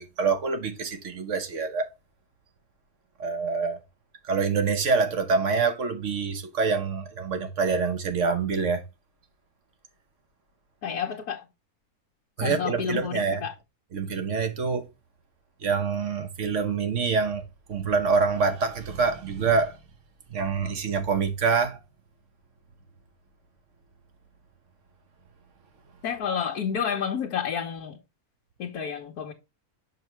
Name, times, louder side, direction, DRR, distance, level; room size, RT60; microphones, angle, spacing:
voice 1, 0.0-1.9 3.2-3.8 4.3-8.8 12.4-13.4 13.9-14.9 15.6-17.4 17.7-19.8 20.3-21.8, right 5 dB, 55° right, 1.3 m, -26 dB
voice 2, 10.8-11.4 12.4-13.5 26.0-28.0 28.6-29.3, left 7 dB, 85° left, 1.4 m, -30 dB
6.6 x 6.0 x 3.1 m
omnidirectional pair, 1.6 m